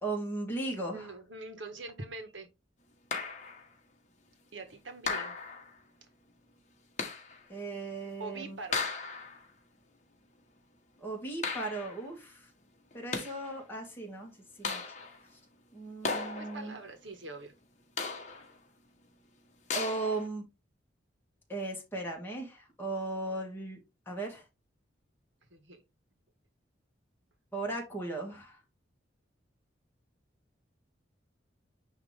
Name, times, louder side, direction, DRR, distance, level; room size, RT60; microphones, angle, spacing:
voice 1, 0.0-1.1 7.5-8.6 11.0-12.5 12.9-14.3 14.6-14.8 15.7-16.8 19.7-20.4 21.5-23.8 24.1-24.4 27.5-28.6, right 2 dB, 10° left, 2.2 m, -37 dB
voice 2, 0.9-2.5 4.5-5.4 8.2-8.9 16.4-17.5 25.5-25.8, right 3 dB, 75° right, 1.6 m, -43 dB
sound 1, 3.1-3.7 5.1-5.8 7.0-7.4 8.7-9.5 11.4-12.0 12.9-13.5 14.6-15.2 16.0-16.8 18.0-18.5 19.7-20.3, left 4 dB, 40° left, 1.4 m, -36 dB
9.4 x 3.2 x 3.5 m
head